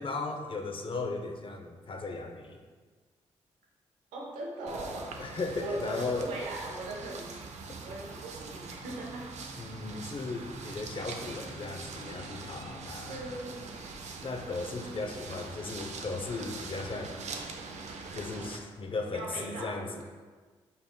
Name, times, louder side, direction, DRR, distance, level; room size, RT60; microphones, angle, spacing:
voice 1, 0.0-2.6 5.2-6.3 7.7-7.8 9.6-13.2 14.2-17.2 18.1-20.0, left 3 dB, 45° left, 4 dB, 0.6 m, -36 dB
voice 2, 4.1-5.1 5.6-7.2 7.8-9.3 13.1-13.6 14.8-15.2 19.1-19.9, right 2 dB, 90° right, -3 dB, 0.8 m, -39 dB
sound 1, 4.7-18.6, right 4 dB, 65° right, 0.5 m, -43 dB
5.5 x 3.6 x 2.2 m, 1.5 s
supercardioid pair, 45°, 13 cm